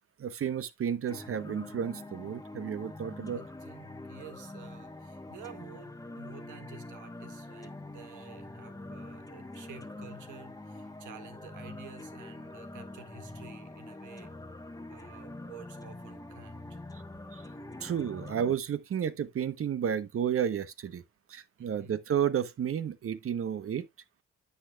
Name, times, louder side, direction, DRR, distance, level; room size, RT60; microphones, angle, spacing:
voice 1, 0.2-3.4 17.3-17.4 17.8-21.0 21.3-23.8, right 8 dB, 50° right, 0.9 m, -32 dB
sound 1, 1.1-18.5, left 2 dB, 10° left, 1.1 m, -45 dB
voice 2, 3.3-14.4 14.9-16.8 21.6-22.0, right 7 dB, 80° right, 1.9 m, -51 dB
9.8 x 8.2 x 2.3 m
cardioid pair, 90°, 30 cm